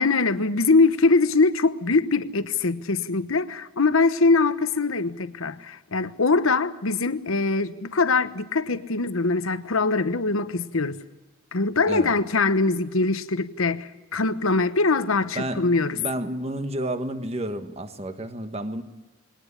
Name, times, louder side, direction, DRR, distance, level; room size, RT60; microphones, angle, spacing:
voice 1, 0.0-11.0 11.5-16.0, left 3 dB, 80° left, 1.1 m, -22 dB
voice 2, 15.3-15.7 15.9-18.8, right 1 dB, 30° right, 1.4 m, -30 dB
21.0 x 18.5 x 9.9 m
head